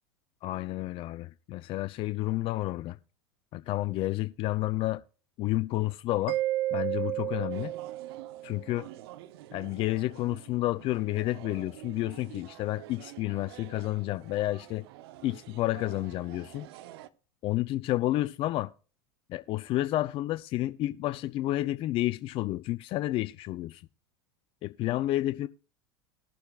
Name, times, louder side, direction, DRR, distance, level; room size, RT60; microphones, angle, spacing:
voice 1, 0.4-3.0 3.5-5.0 5.4-6.4 6.7-7.7 8.4-8.9 9.5-14.8 15.2-16.7 17.4-18.7 19.3-23.8 24.6-25.5, left 16 dB, 40° left, 0.4 m, -30 dB
Mallet percussion, 6.3-8.8, right 15 dB, 45° right, 0.4 m, -32 dB
sound 1, 7.5-17.1, right 14 dB, 70° right, 0.8 m, -49 dB
20.0 x 6.9 x 2.4 m
hypercardioid pair, 95°, 14 cm